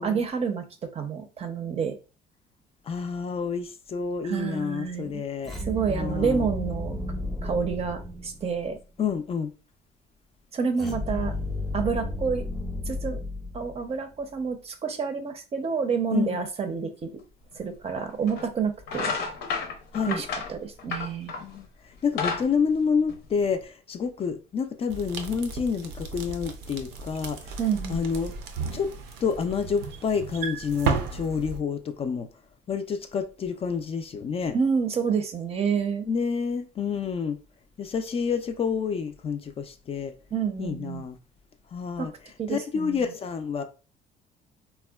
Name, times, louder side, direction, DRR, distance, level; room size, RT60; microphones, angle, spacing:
voice 1, 0.0-2.0 4.2-5.2 5.6-7.0 7.4-8.8 10.5-11.3 11.7-12.5 12.9-13.2 13.5-17.2 17.5-19.1 20.1-21.3 27.6-28.0 34.5-36.1 40.3-41.0 42.0-42.1 42.4-43.1, right 6 dB, 35° right, 0.5 m, -28 dB
voice 2, 2.9-5.5 5.9-6.5 9.0-9.5 16.1-16.4 19.9-20.2 21.4-27.6 27.9-28.3 28.7-28.9 29.2-32.3 32.7-34.6 36.0-37.4 37.8-40.1 40.6-41.1 41.7-42.1 42.5-43.6, left 6 dB, 35° left, 0.4 m, -29 dB
sound 1, 5.4-8.8 10.8-14.0, left 1 dB, ahead, 0.7 m, -33 dB
sound 2, 17.5-17.6 18.3-18.5 18.8-21.6 21.9-23.6, left 5 dB, 80° left, 0.7 m, -31 dB
sound 3, 24.9-31.6, right 5 dB, 85° right, 0.5 m, -34 dB
3.5 x 2.1 x 2.2 m
cardioid pair, 110°, 17 cm